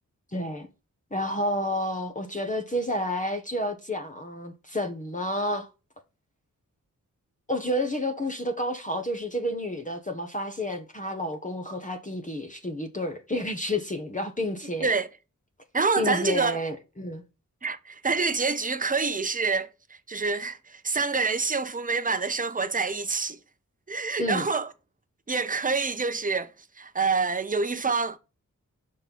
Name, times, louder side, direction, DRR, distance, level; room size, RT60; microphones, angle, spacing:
voice 1, 0.3-0.7 1.1-5.7 7.5-14.9 16.0-17.2 24.2-24.5, left 1 dB, 25° left, 1.2 m, -30 dB
voice 2, 15.7-16.6 17.6-23.4 23.9-24.7 25.3-26.5 26.8-28.2, right 4 dB, 25° right, 0.8 m, -27 dB
5.8 x 4.3 x 5.4 m
cardioid pair, 65°, 32 cm